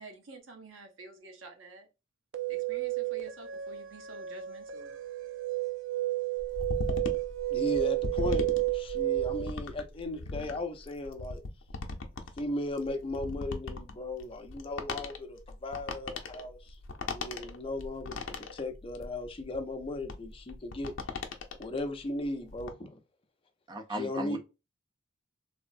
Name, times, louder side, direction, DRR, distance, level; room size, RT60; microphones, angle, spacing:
voice 1, 0.0-1.9 2.5-5.0, right 3 dB, 85° right, 0.8 m, -49 dB
sound 1, 2.3-9.5, right 17 dB, 70° right, 0.4 m, -32 dB
sound 2, 6.4-21.8 22.2-22.7, left 3 dB, 75° left, 0.6 m, -38 dB
voice 2, 7.5-8.4 8.7-11.4 12.4-16.7 17.0-20.9 21.6-23.0 24.0-24.4, left 2 dB, 30° left, 0.5 m, -36 dB
voice 3, 23.7-24.4, right 1 dB, 20° right, 0.6 m, -36 dB
3.4 x 2.0 x 2.5 m
head